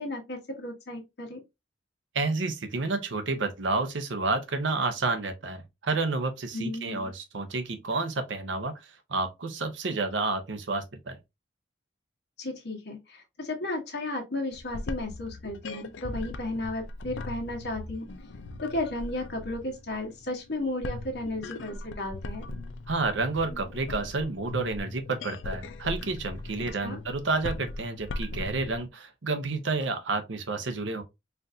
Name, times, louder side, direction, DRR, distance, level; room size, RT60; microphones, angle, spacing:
voice 1, 0.0-1.4 6.5-7.1 12.4-18.1 18.6-22.4 26.6-27.0, left 2 dB, 60° left, 1.1 m, -34 dB
voice 2, 2.1-8.7 9.1-11.2 22.9-31.0, right 3 dB, 90° right, 0.7 m, -30 dB
sound 1, 14.5-28.9, left 2 dB, 90° left, 0.5 m, -39 dB
4.4 x 2.5 x 2.6 m
head